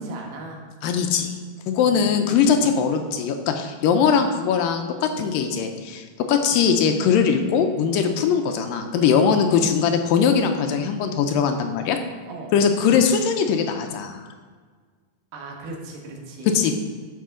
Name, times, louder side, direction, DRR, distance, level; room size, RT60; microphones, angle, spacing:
voice 1, 0.0-0.7 1.8-2.8 5.1-5.4 7.9-8.2 9.0-9.3 12.3-12.5 15.3-16.8, right 3 dB, 85° right, 0 dB, 3.2 m, -38 dB
voice 2, 0.8-1.4 1.7-12.0 12.5-14.2 16.5-16.8, left 6 dB, 80° left, 5 dB, 2.2 m, -21 dB
12.5 x 5.6 x 3.7 m, 1.5 s
omnidirectional pair, 4.2 m